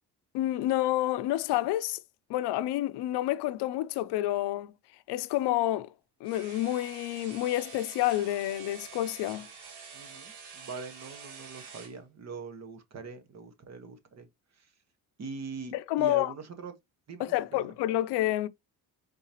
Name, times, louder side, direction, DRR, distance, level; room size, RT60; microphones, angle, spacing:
voice 1, 0.3-2.0 2.3-4.7 5.1-5.9 6.2-9.5 15.7-16.3 17.2-18.5, left 15 dB, 85° left, 0.6 m, -29 dB
sound 1, 6.2-12.0, right 6 dB, 75° right, 2.1 m, -47 dB
voice 2, 9.9-14.3 14.5-14.7 15.2-16.7 17.1-17.7, right 4 dB, 40° right, 1.2 m, -42 dB
4.7 x 3.9 x 2.8 m
cardioid pair, 130°, 39 cm